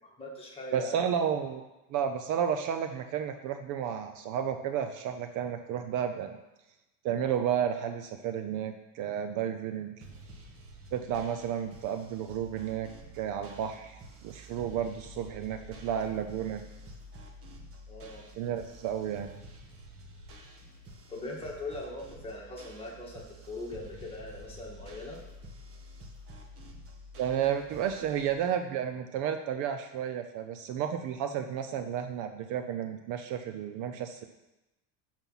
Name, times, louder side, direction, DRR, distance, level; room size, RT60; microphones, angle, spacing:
voice 1, 0.0-1.0 17.9-18.2 21.1-25.2, left 2 dB, 15° left, -3 dB, 2.0 m, -41 dB
voice 2, 0.7-1.6 1.9-6.4 7.0-10.0 10.9-12.9 13.1-16.6 18.4-19.3 27.2-34.2, right 8 dB, 50° right, 7 dB, 0.7 m, -32 dB
sound 1, 10.0-28.3, equal, 35° right, 1.4 m, -49 dB
11.5 x 4.5 x 5.6 m, 1.0 s
cardioid pair, 150°, 38 cm